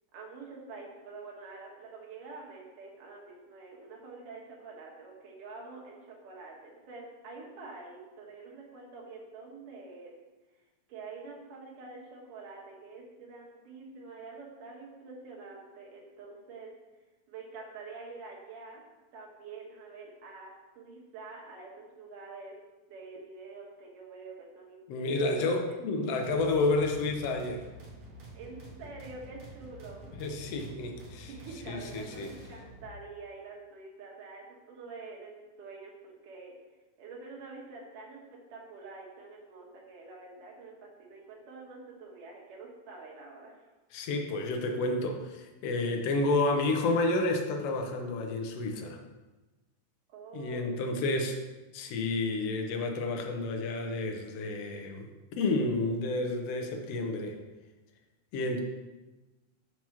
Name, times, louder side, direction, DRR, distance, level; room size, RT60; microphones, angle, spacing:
voice 1, 0.1-10.1 10.9-16.7 17.3-18.8 19.1-22.6 22.9-25.8 28.3-30.1 31.3-36.5 37.0-43.5 50.1-51.2, right 3 dB, 80° right, -2 dB, 2.9 m, -47 dB
voice 2, 24.9-27.6 30.2-31.3 31.7-32.3 43.9-49.0 50.3-51.4 51.7-55.1 55.4-57.4 58.3-58.6, left 2 dB, 75° left, 4 dB, 1.4 m, -30 dB
sound 1, 26.2-32.9, right 1 dB, 55° right, 1.8 m, -49 dB
5.9 x 4.6 x 5.7 m, 1.2 s
omnidirectional pair, 3.6 m